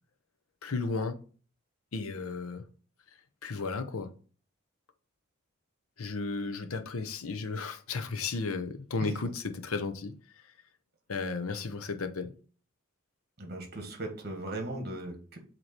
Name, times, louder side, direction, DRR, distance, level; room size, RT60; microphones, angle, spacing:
voice 1, 0.6-1.2 1.9-2.6 3.4-4.1 6.0-10.4 11.1-12.3, left 4 dB, 80° left, 0.7 m, -34 dB
voice 2, 13.4-15.4, right 2 dB, 45° right, 1.5 m, -38 dB
7.8 x 3.0 x 4.3 m
head